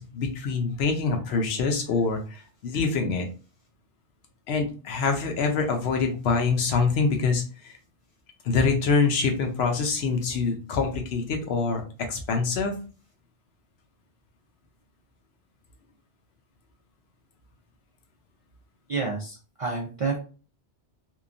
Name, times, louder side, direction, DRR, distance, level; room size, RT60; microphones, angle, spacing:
voice 1, 0.0-3.3 4.5-7.7 8.4-11.8 12.1-12.7, left 4 dB, 70° left, 4 dB, 0.9 m, -25 dB
voice 2, 18.9-20.2, right 4 dB, 55° right, -2 dB, 0.3 m, -29 dB
2.8 x 2.2 x 2.5 m, 0.36 s
omnidirectional pair, 1.1 m